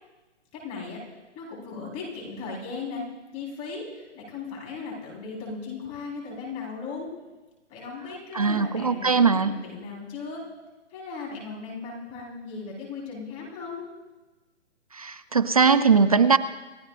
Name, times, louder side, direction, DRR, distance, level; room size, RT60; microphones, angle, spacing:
voice 1, 0.5-1.0 1.3-3.0 3.3-7.1 7.7-10.4 10.9-13.9, left 4 dB, 20° left, -2 dB, 4.0 m, -37 dB
voice 2, 8.3-9.5 14.9-16.4, right 5 dB, 30° right, 13 dB, 0.4 m, -20 dB
28.5 x 15.0 x 2.5 m, 1.2 s
hypercardioid pair, 160°, 36 cm